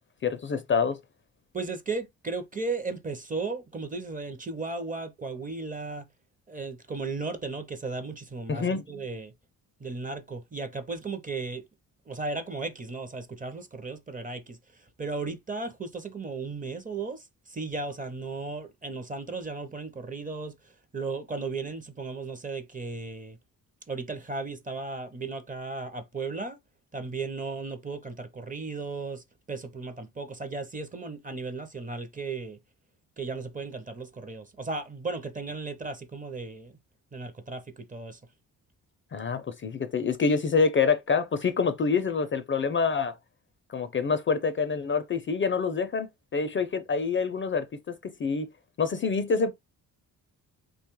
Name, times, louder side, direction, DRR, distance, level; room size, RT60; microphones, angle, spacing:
voice 1, 0.2-1.0 8.5-8.8 39.1-43.2 43.7-48.5 48.8-49.5, left 5 dB, 35° left, 0.4 m, -26 dB
voice 2, 1.5-6.1 6.5-9.3 9.8-11.6 12.1-14.6 15.0-23.4 23.9-26.6 26.9-32.6 33.2-36.7 37.1-38.2, right 3 dB, 20° right, 0.5 m, -35 dB
3.1 x 2.2 x 2.9 m
cardioid pair, 80°, 36 cm